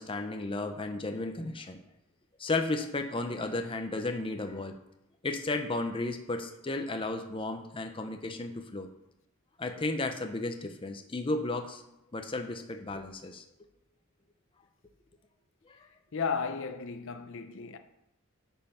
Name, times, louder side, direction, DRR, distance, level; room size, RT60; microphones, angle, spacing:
voice 1, 0.0-1.8 2.4-4.7 5.2-8.9 9.6-11.8 12.1-13.4 15.7-15.9, left 2 dB, 25° left, 0.7 m, -34 dB
voice 2, 16.1-17.8, left 5 dB, 60° left, 0.7 m, -34 dB
8.7 x 5.5 x 5.6 m
head